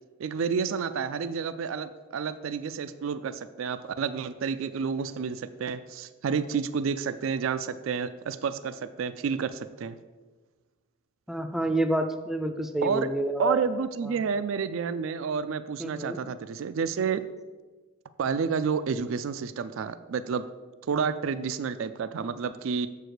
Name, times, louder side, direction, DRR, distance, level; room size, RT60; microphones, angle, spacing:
voice 1, 0.2-10.0 12.8-13.1 13.4-17.2 18.2-20.5 20.9-22.9, right 6 dB, 75° right, 12 dB, 0.4 m, -30 dB
voice 2, 11.3-13.6 15.8-16.2 20.9-21.1, right 1 dB, ahead, 6 dB, 0.4 m, -28 dB
7.0 x 4.7 x 6.5 m, 1.3 s
head